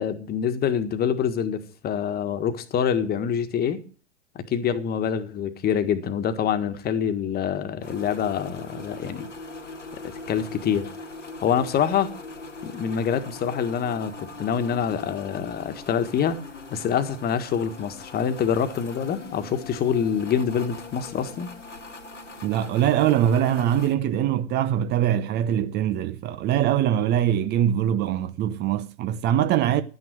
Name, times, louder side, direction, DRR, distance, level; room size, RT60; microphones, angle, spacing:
voice 1, 0.0-3.8 4.3-9.3 10.0-10.9 11.4-12.1 12.6-16.4 16.7-21.5, left 8 dB, 25° left, 1.6 m, -26 dB
sound 1, 7.8-23.9, left 3 dB, 85° left, 2.3 m, -41 dB
voice 2, 22.4-29.8, right 10 dB, 30° right, 0.8 m, -23 dB
12.0 x 9.7 x 6.2 m
figure-of-eight pair, 95°, 36 cm